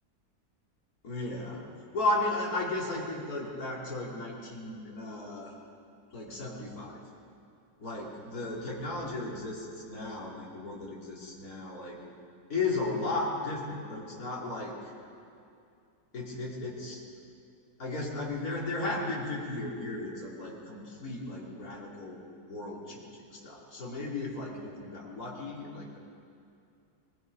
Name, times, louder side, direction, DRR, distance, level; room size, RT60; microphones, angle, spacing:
voice 1, 1.0-1.6 1.9-5.6 6.1-7.0 7.8-12.0 12.5-14.7 16.1-17.0 17.8-22.2 22.5-26.0, left 2 dB, 50° left, -4 dB, 3.6 m, -35 dB
22.5 x 21.5 x 5.4 m, 2.5 s
omnidirectional pair, 2.0 m